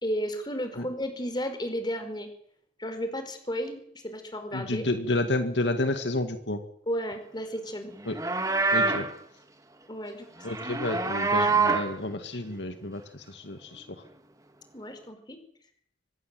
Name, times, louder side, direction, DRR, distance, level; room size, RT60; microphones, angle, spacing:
voice 1, 0.0-2.3 2.8-4.8 6.9-7.9 9.9-10.3 14.7-15.4, equal, 25° left, 8 dB, 4.9 m, -33 dB
voice 2, 4.5-6.6 8.1-8.2 8.7-9.1 10.4-14.0, left 2 dB, 80° left, 7 dB, 2.2 m, -30 dB
Livestock farm animals working animals, 8.0-9.1 10.4-11.9, right 4 dB, 20° right, 2.1 m, -25 dB
25.0 x 21.0 x 7.8 m, 0.68 s
head